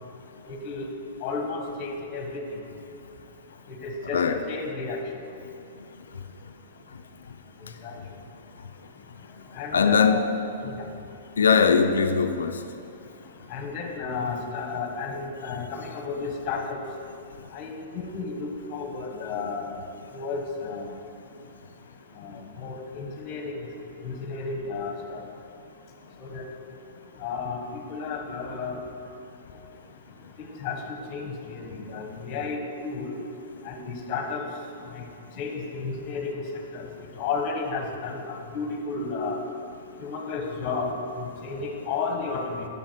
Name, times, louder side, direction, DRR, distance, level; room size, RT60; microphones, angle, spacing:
voice 1, 0.5-0.9 1.2-2.4 3.7-5.0 7.8-8.0 9.5-10.3 10.6-10.9 13.5-16.8 17.5-19.8 20.1-20.9 22.2-23.7 24.0-25.2 26.2-26.5 27.2-27.6 27.9-28.8 30.4-33.1 33.6-34.4 34.9-35.0 35.4-36.4 36.7-36.8 37.2-39.4 40.0-42.7, left 4 dB, 40° left, 3 dB, 1.1 m, -32 dB
voice 2, 9.7-10.3 11.4-12.6, left 6 dB, 85° left, 7 dB, 0.4 m, -20 dB
8.1 x 5.8 x 4.4 m, 2.7 s
hypercardioid pair, 125°, 0 cm